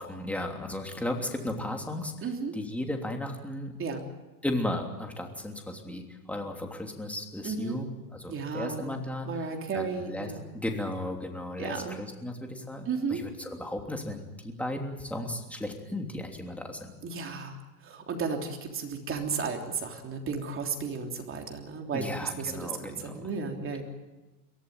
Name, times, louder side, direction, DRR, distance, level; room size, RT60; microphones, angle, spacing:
voice 1, 0.0-3.7 4.4-16.9 21.9-23.3, left 1 dB, 5° left, 2 dB, 3.1 m, -35 dB
voice 2, 2.2-2.5 3.8-4.0 7.4-7.8 8.3-9.0 9.3-10.4 11.6-12.0 12.8-13.2 17.0-17.6 17.8-23.8, right 5 dB, 25° right, 3 dB, 3.4 m, -34 dB
23.5 x 17.0 x 9.3 m, 1.1 s
supercardioid pair, 130°, 47 cm